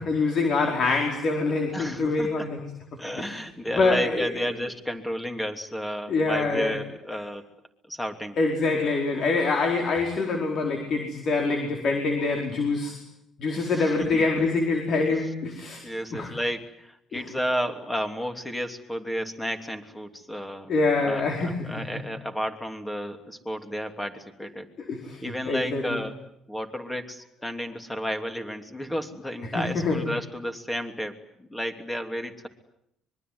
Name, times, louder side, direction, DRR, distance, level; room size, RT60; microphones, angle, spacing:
voice 1, 0.0-2.6 3.2-3.3 3.7-4.5 6.1-6.8 8.4-13.0 13.4-15.8 16.1-16.3 17.1-17.2 20.7-21.9 24.9-26.0 29.4-30.0, left 3 dB, 50° left, 3 dB, 4.6 m, -25 dB
voice 2, 1.7-2.5 3.0-7.5 7.9-8.4 13.5-14.3 15.1-15.2 15.8-20.7 21.0-24.7 25.2-26.2 26.5-32.5, equal, 5° left, 6 dB, 3.0 m, -32 dB
25.0 x 23.0 x 9.5 m, 0.76 s
cardioid pair, 130°, 0 cm